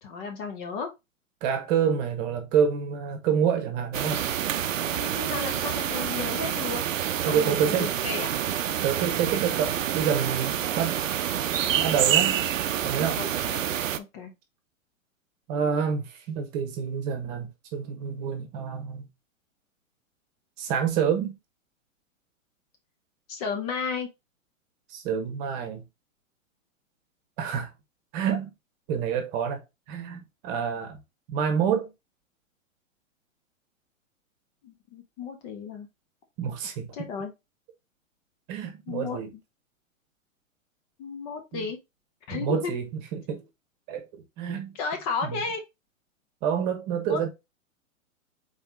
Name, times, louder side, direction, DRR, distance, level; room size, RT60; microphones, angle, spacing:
voice 1, 0.0-0.9 3.9-4.2 4.6-6.8 7.3-8.3 13.1-13.6 14.0-14.3 23.3-24.1 34.6-35.9 36.9-37.3 38.9-39.2 41.0-41.8 42.3-42.7 44.7-45.6 47.1-47.3, left 5 dB, 30° left, 0.8 m, -33 dB
voice 2, 1.4-4.2 7.2-7.9 8.8-11.0 11.7-12.4 12.8-13.2 15.5-19.1 20.6-21.3 24.9-25.8 27.4-27.7 28.1-28.5 28.9-29.6 29.9-31.0 31.3-31.9 36.4-36.9 38.5-39.3 41.5-41.7 42.3-43.4 43.9-44.7 45.2-45.4 46.4-47.3, right 7 dB, 30° right, 1.2 m, -28 dB
sound 1, 3.9-14.0, right 10 dB, 70° right, 0.6 m, -27 dB
4.1 x 3.4 x 3.6 m
figure-of-eight pair, 115°, 40 cm